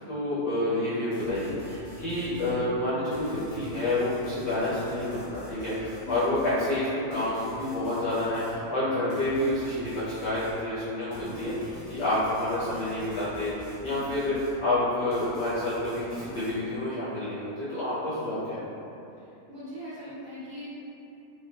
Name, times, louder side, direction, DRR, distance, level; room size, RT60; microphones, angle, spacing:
voice 1, 0.0-14.3 14.6-18.6, left 1 dB, 55° left, -12 dB, 1.0 m, -29 dB
sound 1, 1.1-2.6 3.1-6.6 7.1-8.6 9.1-10.6 11.1-14.6 15.1-16.6, equal, 75° left, 1.3 m, -46 dB
voice 2, 6.0-6.4 13.9-14.2 19.2-20.7, left 1 dB, 45° right, -13 dB, 0.9 m, -41 dB
3.3 x 2.3 x 2.3 m, 2.8 s
omnidirectional pair, 1.6 m